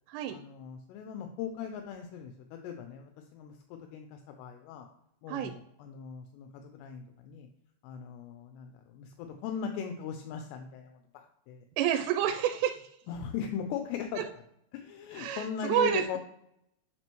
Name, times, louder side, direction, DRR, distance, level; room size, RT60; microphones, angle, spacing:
voice 1, 0.3-4.9 5.2-7.5 7.8-11.6 13.1-14.2 14.7-16.2, left 7 dB, 85° left, 5 dB, 2.8 m, -39 dB
voice 2, 11.8-12.9 14.2-14.3 15.1-16.2, right 10 dB, 90° right, 6 dB, 2.7 m, -29 dB
7.6 x 5.9 x 3.0 m, 0.76 s
omnidirectional pair, 4.8 m